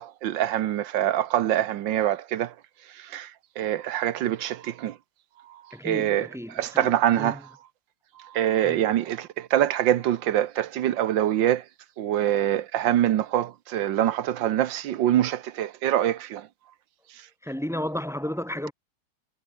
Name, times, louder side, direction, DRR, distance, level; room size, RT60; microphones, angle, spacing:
voice 1, 0.0-2.5 3.0-3.3 3.6-5.0 5.8-6.3 6.5-7.4 8.2-11.6 12.0-16.5, right 12 dB, 70° right, 1.5 m, -24 dB
voice 2, 5.7-7.4 8.6-8.8 17.4-18.7, equal, ahead, 7.0 m, -33 dB
omnidirectional pair, 2.2 m